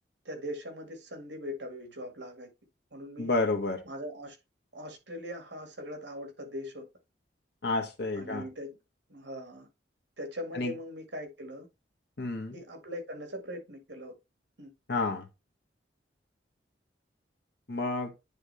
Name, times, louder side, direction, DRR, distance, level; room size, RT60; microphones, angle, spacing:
voice 1, 0.2-2.5 2.9-3.3 3.9-4.4 4.7-6.8 8.1-8.7 9.1-9.7 10.2-11.7 12.5-14.1 14.6-14.7, equal, 65° right, 2.2 m, -40 dB
voice 2, 3.2-3.8 7.6-8.4 10.5-10.7 12.2-12.6 14.9-15.2 17.7-18.1, left 3 dB, 60° left, 1.6 m, -30 dB
9.8 x 3.5 x 3.3 m
head